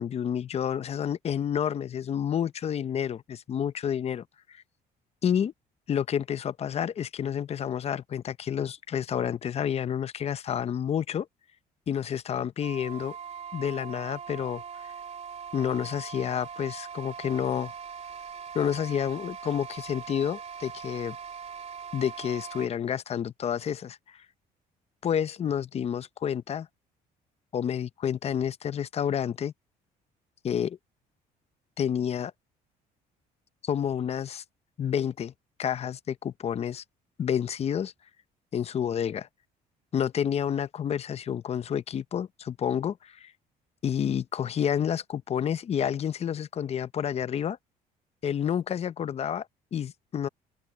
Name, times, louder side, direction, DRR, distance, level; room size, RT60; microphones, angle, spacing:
voice 1, 0.0-4.6 5.2-5.5 5.9-11.3 11.9-13.2 13.5-14.6 15.5-17.7 18.5-21.2 21.9-24.2 25.0-26.7 27.5-29.5 30.4-30.8 31.8-32.3 33.6-34.4 34.8-35.3 35.6-36.8 37.2-37.9 38.5-39.3 39.9-43.3 43.8-47.6 48.2-50.3, left 8 dB, 40° left, 0.6 m, -29 dB
sound 1, 12.6-22.7, right 7 dB, 40° right, 2.4 m, -41 dB
open air
cardioid pair, 110°, 17 cm